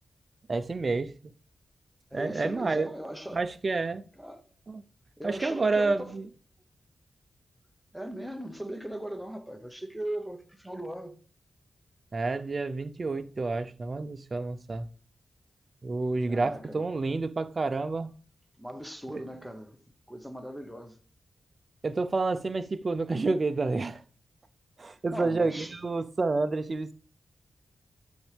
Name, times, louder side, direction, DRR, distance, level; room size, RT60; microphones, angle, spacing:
voice 1, 0.5-1.1 2.1-2.9 3.3-4.0 4.7-4.8 5.2-6.3 12.1-14.9 15.8-18.1 19.1-19.2 21.8-24.0 24.8-26.9, right 3 dB, 40° right, 0.6 m, -29 dB
voice 2, 2.1-3.4 4.2-4.5 5.2-6.2 7.9-11.2 16.3-16.8 18.6-19.8 20.1-21.0 24.8-25.7, right 1 dB, ahead, 1.0 m, -39 dB
9.5 x 7.2 x 3.4 m
wide cardioid pair, 115°, 0 cm